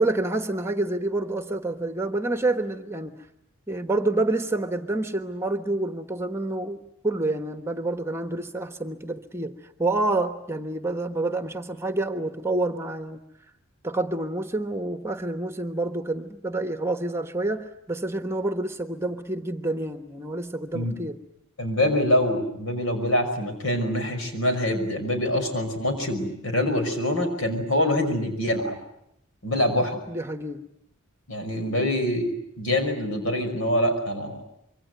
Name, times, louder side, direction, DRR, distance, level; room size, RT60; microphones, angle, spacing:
voice 1, 0.0-3.3 3.7-13.2 13.8-21.2 30.1-30.7, right 2 dB, 10° right, 8 dB, 1.2 m, -28 dB
voice 2, 21.6-28.8 29.4-30.0 31.3-34.4, left 1 dB, 70° left, 6 dB, 5.9 m, -25 dB
26.0 x 24.0 x 9.5 m, 0.78 s
head